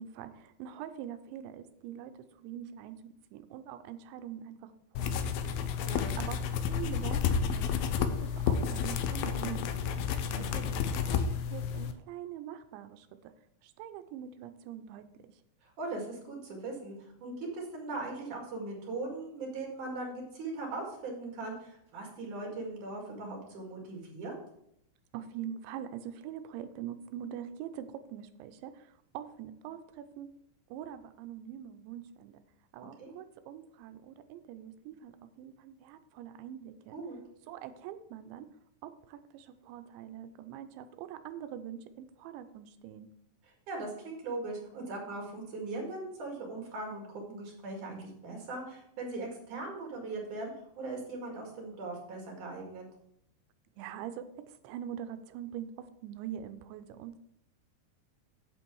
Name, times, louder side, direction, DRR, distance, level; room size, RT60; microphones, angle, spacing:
voice 1, 0.0-5.1 5.4-10.0 10.4-13.3 13.6-15.4 25.1-30.3 30.7-32.4 32.7-37.0 37.5-38.5 38.8-43.1 53.8-57.2, right 10 dB, 80° right, 10 dB, 2.9 m, -44 dB
sound 1, 5.0-11.9, left 7 dB, 90° left, 2.2 m, -31 dB
voice 2, 5.9-6.2 10.3-10.6 15.6-24.4 33.0-33.2 36.9-37.2 43.7-52.9, right 2 dB, 50° right, 0 dB, 2.9 m, -39 dB
8.8 x 8.0 x 4.6 m, 0.75 s
omnidirectional pair, 5.3 m